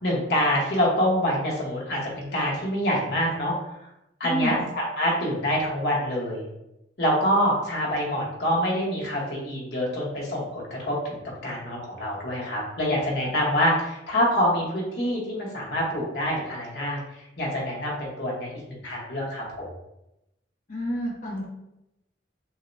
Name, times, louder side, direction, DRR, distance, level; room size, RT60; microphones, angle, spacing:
voice 1, 0.0-3.5 4.2-6.4 7.0-17.0 17.4-19.6, equal, 70° left, -4 dB, 1.3 m, -26 dB
voice 2, 4.2-4.6 20.7-21.5, equal, 45° left, -4 dB, 1.2 m, -28 dB
6.2 x 2.2 x 2.7 m, 0.88 s
head